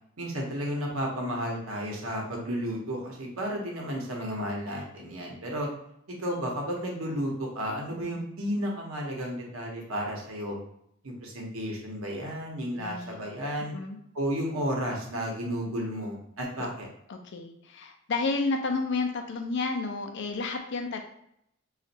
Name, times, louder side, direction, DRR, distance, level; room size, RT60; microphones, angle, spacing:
voice 1, 0.2-5.7 6.1-10.6 11.0-13.7 14.1-16.9, equal, 85° right, -1 dB, 0.9 m, -32 dB
voice 2, 12.8-13.3 13.7-14.0 17.1-21.0, left 3 dB, 55° left, 5 dB, 0.5 m, -31 dB
4.1 x 2.4 x 2.6 m, 0.73 s
head